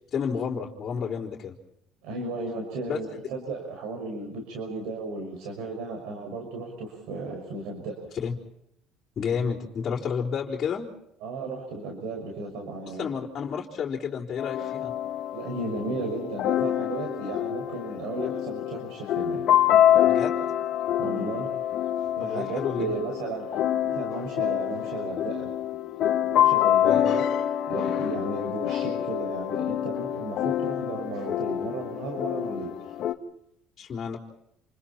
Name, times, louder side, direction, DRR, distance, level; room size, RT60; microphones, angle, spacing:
voice 1, 0.1-1.6 2.9-3.0 8.2-8.3 9.2-10.9 12.9-14.9 20.1-20.5 22.2-22.8 26.8-27.1 33.8-34.2, left 6 dB, 35° left, -6 dB, 3.6 m, -31 dB
voice 2, 2.0-8.0 11.2-13.1 15.3-19.5 21.0-21.5 22.2-25.5 26.3-27.3 27.7-32.9, right 3 dB, 75° right, 2 dB, 5.9 m, -34 dB
sound 1, 14.4-33.1, left 11 dB, 55° left, 1.4 m, -26 dB
28.5 x 28.5 x 4.3 m, 0.77 s
cardioid pair, 140°, 0 cm